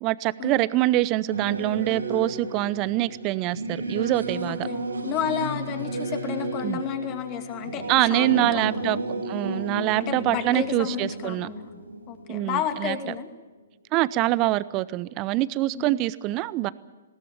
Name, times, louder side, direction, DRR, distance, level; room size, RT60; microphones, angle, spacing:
voice 1, 0.0-4.7 6.6-6.8 7.9-9.0 9.3-11.5 12.3-13.0 13.9-16.7, right 17 dB, 30° right, 18 dB, 0.7 m, -25 dB
Singing / Musical instrument, 1.3-13.2, right 2 dB, 85° right, 4.7 m, -33 dB
voice 2, 4.4-9.0 10.0-11.8 12.1-13.3 15.7-16.0, left 9 dB, 30° left, 6 dB, 2.5 m, -32 dB
20.0 x 17.5 x 8.9 m, 1.2 s
figure-of-eight pair, 125°, 0 cm